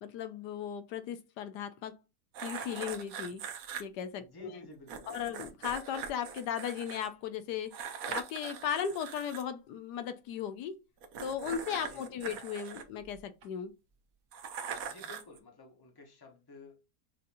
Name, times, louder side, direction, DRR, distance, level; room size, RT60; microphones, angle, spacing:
voice 1, 0.0-1.9 2.4-3.4 3.8-4.6 5.1-7.7 8.1-10.8 11.2-13.7, left 8 dB, 80° left, 1.2 m, -37 dB
sound 1, 2.3-3.8 4.9-7.1 7.7-9.4 11.0-13.5 14.3-15.4, right 7 dB, 65° right, 1.1 m, -42 dB
voice 2, 4.2-5.3 11.9-12.4 14.9-17.0, left 2 dB, 15° left, 1.0 m, -53 dB
6.4 x 2.8 x 2.6 m
omnidirectional pair, 1.8 m